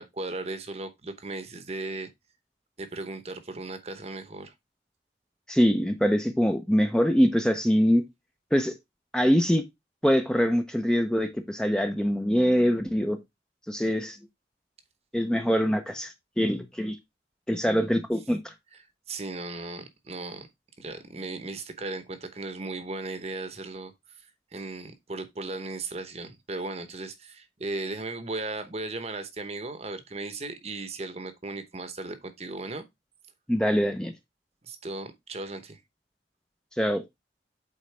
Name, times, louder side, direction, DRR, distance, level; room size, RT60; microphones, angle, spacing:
voice 1, 0.0-2.1 2.8-4.5 19.1-20.5 20.8-24.3 24.5-32.9 34.6-35.8, right 2 dB, 35° right, 0.9 m, -36 dB
voice 2, 5.5-8.0 8.5-8.7 9.1-9.6 10.0-13.2 13.7-14.2 15.1-17.0 17.5-18.5 33.5-34.1 36.8-37.0, equal, 5° left, 0.5 m, -24 dB
8.4 x 3.9 x 3.2 m
head